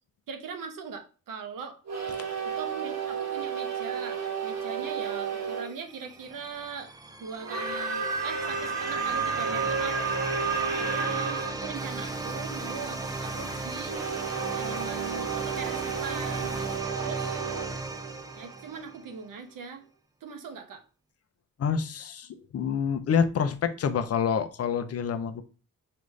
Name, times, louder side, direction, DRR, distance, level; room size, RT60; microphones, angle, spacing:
voice 1, 0.3-1.8 2.6-6.9 7.2-10.0 10.8-14.0 14.5-16.6 17.0-17.4 18.4-19.8 20.2-20.8, right 5 dB, 75° right, 7 dB, 0.9 m, -40 dB
sound 1, 1.8-5.7 7.4-11.5 13.9-18.7, right 6 dB, 55° right, 1.1 m, -32 dB
sound 2, 5.3-19.1, right 3 dB, 10° right, 0.3 m, -36 dB
sound 3, 11.7-16.8, left 1 dB, 15° left, 1.1 m, -47 dB
voice 2, 21.6-25.4, left 6 dB, 50° left, 8 dB, 0.5 m, -27 dB
5.0 x 2.5 x 3.1 m, 0.36 s
wide cardioid pair, 160°, 33 cm